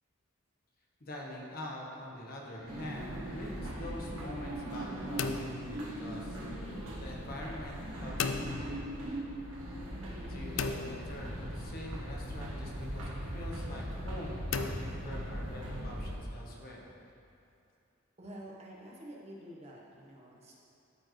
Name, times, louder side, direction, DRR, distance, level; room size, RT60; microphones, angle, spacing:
voice 1, 1.0-8.9 10.3-16.9, left 1 dB, 50° left, -2 dB, 1.1 m, -45 dB
sound 1, 2.7-16.2, equal, 85° right, 1.5 m, -39 dB
sound 2, 5.2-6.5 8.2-9.2 10.6-11.8 14.5-15.7, left 5 dB, 70° left, 0.4 m, -38 dB
voice 2, 18.2-20.6, right 1 dB, 35° right, -3 dB, 1.1 m, -48 dB
13.0 x 4.4 x 3.2 m, 2.7 s
head